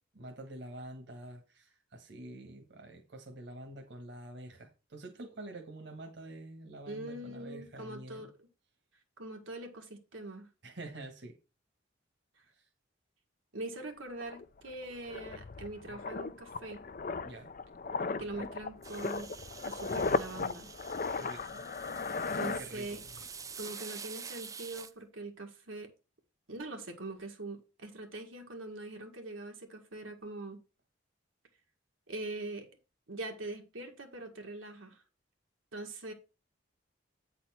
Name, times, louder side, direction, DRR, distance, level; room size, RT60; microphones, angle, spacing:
voice 1, 0.1-8.3 10.6-11.4 12.5-12.7 17.2-17.5 21.1-21.6 22.6-23.0, right 1 dB, 60° right, 1.4 m, -47 dB
voice 2, 6.9-8.3 9.2-10.5 13.5-16.9 18.2-19.3 19.6-20.7 22.4-23.0 23.6-25.9 26.5-30.6 32.1-32.7 33.1-35.0 35.7-36.1, right 2 dB, 85° right, 1.9 m, -42 dB
sound 1, 13.8-13.9 14.2-23.3 23.5-23.8, left 4 dB, 45° left, 0.5 m, -37 dB
sound 2, 18.8-24.9, right 6 dB, 15° right, 0.3 m, -47 dB
8.9 x 4.3 x 5.8 m
head